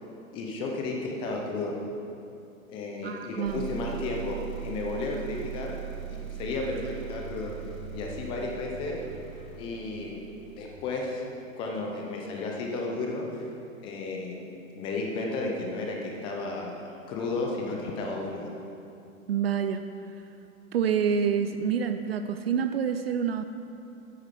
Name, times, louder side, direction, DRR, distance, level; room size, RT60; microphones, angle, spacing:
voice 1, 0.3-1.8 2.7-5.8 6.1-7.5 7.9-9.0 9.6-10.1 10.6-11.2 11.6-13.5 13.8-14.4 14.7-18.5, left 3 dB, 10° left, 0 dB, 0.6 m, -33 dB
voice 2, 3.0-3.7 19.3-19.9 20.1-20.2 20.7-23.5, right 7 dB, 45° right, 9 dB, 0.5 m, -27 dB
sound 1, 3.5-11.0, right 13 dB, 80° right, 0.9 m, -40 dB
sound 2, 5.6-10.9, left 6 dB, 45° left, 0.9 m, -49 dB
9.4 x 8.0 x 5.8 m, 2.7 s
hypercardioid pair, 145°, 42 cm